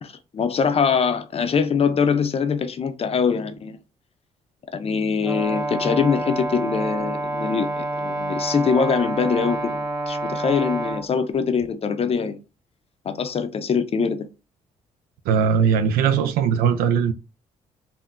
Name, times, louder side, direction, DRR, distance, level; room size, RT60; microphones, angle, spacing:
voice 1, 0.0-3.8 4.7-12.4 13.0-14.3, left 6 dB, 40° left, 0.5 m, -23 dB
Brass instrument, 5.2-11.1, right 1 dB, 25° right, 1.5 m, -28 dB
voice 2, 15.3-17.1, right 7 dB, 80° right, 0.4 m, -19 dB
3.6 x 2.1 x 2.4 m
supercardioid pair, 60°, 15 cm